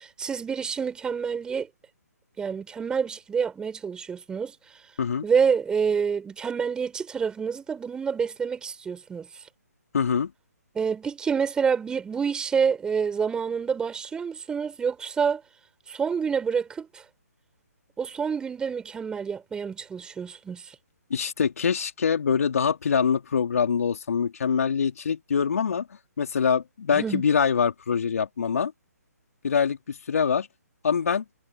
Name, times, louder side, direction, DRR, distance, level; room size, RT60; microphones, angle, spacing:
voice 1, 0.0-1.7 2.4-4.5 5.2-9.3 10.7-15.4 15.9-17.0 18.0-20.7 26.9-27.2, right 6 dB, 10° right, 6.1 m, -27 dB
voice 2, 9.9-10.3 21.1-25.9 26.2-28.7 29.4-30.5 30.8-31.2, left 6 dB, 60° left, 3.3 m, -24 dB
figure-of-eight pair, 140°, 9 cm